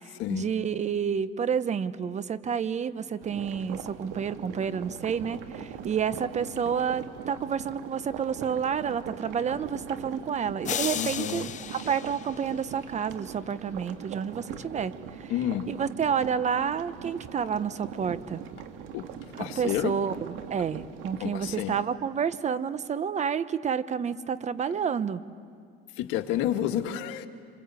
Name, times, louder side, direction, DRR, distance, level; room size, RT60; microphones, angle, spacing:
voice 1, 0.3-11.5 11.7-14.9 15.2-15.3 15.7-18.4 19.4-20.1 20.5-25.2, right 7 dB, 35° right, 14 dB, 1.0 m, -29 dB
sound 1, 3.2-21.9, right 8 dB, 75° right, 1.9 m, -41 dB
sound 2, 10.6-13.0, left 9 dB, 35° left, 0.7 m, -34 dB
voice 2, 11.0-11.5 14.6-14.7 15.3-15.7 18.9-19.0 19.4-19.9 21.2-21.7 26.0-27.3, left 12 dB, 75° left, 6 dB, 1.7 m, -30 dB
26.5 x 25.0 x 8.3 m, 2.2 s
supercardioid pair, 100°, 20 cm